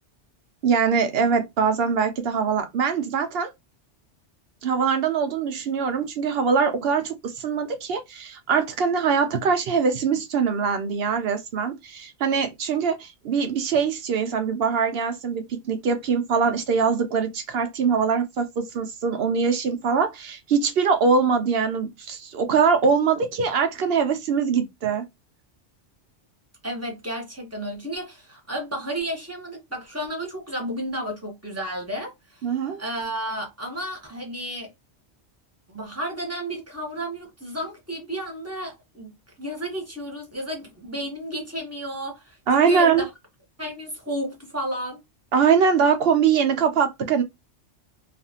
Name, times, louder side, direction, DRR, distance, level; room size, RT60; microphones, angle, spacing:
voice 1, 0.6-3.5 4.6-25.0 32.4-32.8 42.5-43.1 45.3-47.2, right 6 dB, 65° right, 0.7 m, -22 dB
voice 2, 26.6-32.5 32.8-34.7 35.7-43.1 43.6-45.0, equal, 15° right, 0.9 m, -32 dB
2.6 x 2.4 x 2.7 m
omnidirectional pair, 1.2 m